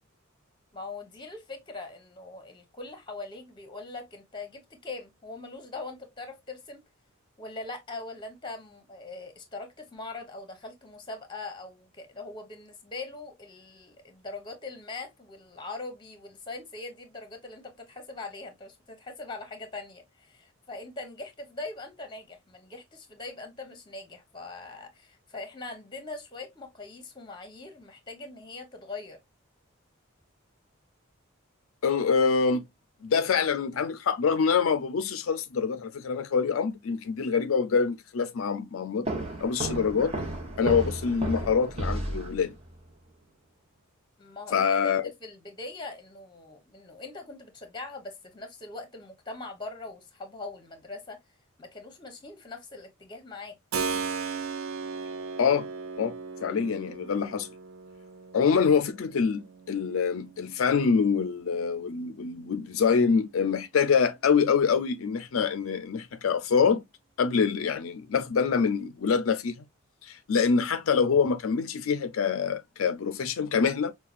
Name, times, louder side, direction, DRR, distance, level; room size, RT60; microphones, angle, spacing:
voice 1, 0.7-6.8 7.4-29.2 44.2-51.2 51.6-53.6, left 3 dB, 20° left, 0.9 m, -41 dB
voice 2, 31.8-32.6 33.0-39.1 39.4-40.1 40.6-42.5 44.5-45.1 55.4-55.7 56.0-56.1 56.4-57.5 58.3-66.8 67.2-69.6 70.0-73.9, left 6 dB, 75° left, 0.4 m, -25 dB
sound 1, 39.0-42.7, right 1 dB, 30° right, 1.0 m, -33 dB
Keyboard (musical), 53.7-62.3, right 5 dB, 75° right, 0.5 m, -38 dB
5.6 x 2.2 x 2.4 m
head